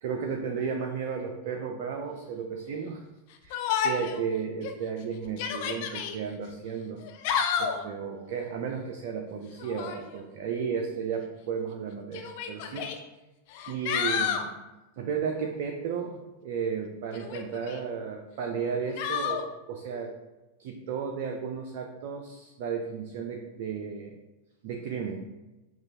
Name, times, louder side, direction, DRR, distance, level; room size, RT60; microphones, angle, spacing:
voice 1, 0.0-3.0 3.4-7.0 7.6-12.9 13.7-14.5 15.0-20.1 20.6-24.2 24.6-25.2, right 6 dB, 50° right, 2 dB, 0.4 m, -34 dB
Yell, 3.5-4.2 4.6-4.7 5.3-6.2 7.0-7.8 9.6-10.0 11.2-11.3 12.1-13.0 13.5-14.5 17.1-17.8 19.0-19.4, left 7 dB, 45° left, 0.4 m, -30 dB
5.9 x 2.3 x 2.6 m, 1.0 s
figure-of-eight pair, 90°, 0 cm